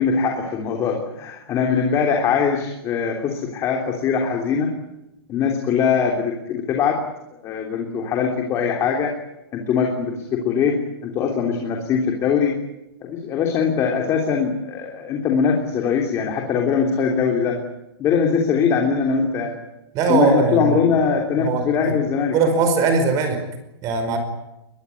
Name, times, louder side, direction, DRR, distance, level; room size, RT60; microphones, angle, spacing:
voice 1, 0.0-4.7 5.3-7.0 7.4-9.1 9.5-12.6 13.0-17.6 18.0-19.6 20.1-22.4, left 6 dB, 20° left, 2 dB, 3.3 m, -21 dB
voice 2, 19.9-20.8 21.4-21.9 22.3-23.4 23.8-24.2, right 4 dB, 25° right, 7 dB, 5.1 m, -20 dB
22.5 x 22.0 x 9.8 m, 0.90 s
supercardioid pair, 170°, 13 cm